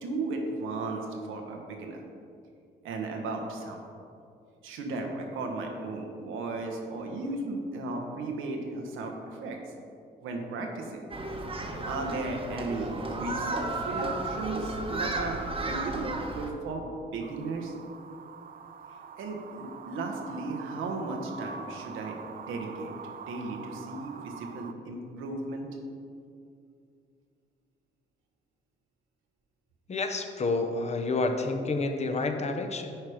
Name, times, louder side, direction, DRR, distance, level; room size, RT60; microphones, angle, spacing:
voice 1, 0.0-2.0 2.8-3.8 4.6-9.6 10.2-11.0 11.8-17.7 19.2-25.7, right 3 dB, 90° right, 3 dB, 1.2 m, -35 dB
Human group actions, 11.1-16.5, right 2 dB, 30° right, 1.1 m, -33 dB
sound 1, 17.2-24.7, right 6 dB, 45° right, 0.5 m, -44 dB
voice 2, 29.9-33.0, left 3 dB, 35° left, 6 dB, 0.9 m, -29 dB
9.2 x 4.9 x 5.0 m, 2.4 s
cardioid pair, 90°, 20 cm